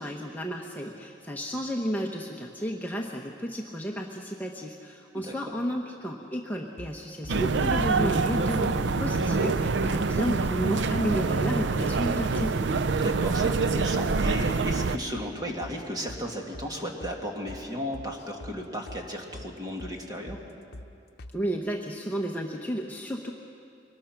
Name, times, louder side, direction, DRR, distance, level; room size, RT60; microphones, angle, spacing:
voice 1, 0.0-12.6 21.3-23.3, equal, 10° left, 0 dB, 0.9 m, -32 dB
sound 1, 6.8-7.4 7.7-7.9 8.2-8.3 8.6-8.8 9.1-9.3 9.6-9.7 10.0-10.2 10.5-11.1 11.4-11.6 11.9-12.1 12.4-12.5 12.8-13.0 13.3-13.4 13.7-13.9 14.2-14.8 15.1-15.3 15.6-15.8 16.1-16.2 16.5-16.7 17.0-17.2 17.5-17.6 17.9-18.6 18.9-19.0 19.3-19.5 19.8-20.0 20.3-20.4 20.7-20.9 21.2-21.4, left 1 dB, 60° left, 0.8 m, -43 dB
sound 2, 7.3-15.0, right 4 dB, 75° right, 0.6 m, -26 dB
voice 2, 12.9-20.4, equal, 20° right, 1 dB, 2.1 m, -35 dB
23.0 x 20.0 x 5.9 m, 2.6 s
head